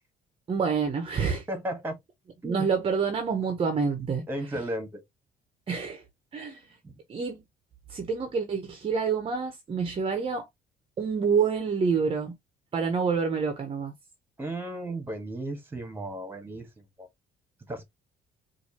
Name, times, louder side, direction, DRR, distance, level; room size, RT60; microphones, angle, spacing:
voice 1, 0.5-1.4 2.4-4.2 5.7-6.0 6.3-6.6 7.1-7.4 7.9-10.5 11.0-12.3 12.7-13.9, right 5 dB, 35° right, 0.8 m, -27 dB
voice 2, 1.5-2.0 2.4-2.7 4.3-5.0 6.8-6.9 14.4-17.1 17.7-17.8, right 1 dB, 15° right, 1.4 m, -34 dB
4.3 x 2.6 x 2.8 m
cardioid pair, 110°, 17 cm